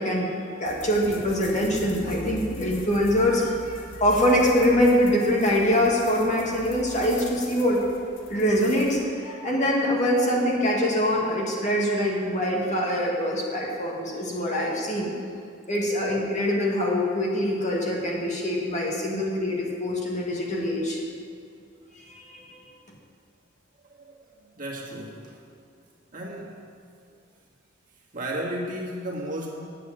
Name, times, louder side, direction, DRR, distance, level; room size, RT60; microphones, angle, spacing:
voice 1, 0.0-7.8 8.3-15.2 15.7-21.0 22.0-22.5, equal, 40° left, -3 dB, 2.1 m, -24 dB
sound 1, 0.7-9.0, left 2 dB, 85° left, 1.5 m, -42 dB
voice 2, 23.9-24.3 24.6-25.4 26.1-26.6 28.1-29.7, right 1 dB, 45° right, -3 dB, 2.0 m, -34 dB
9.9 x 8.5 x 7.6 m, 2.5 s
head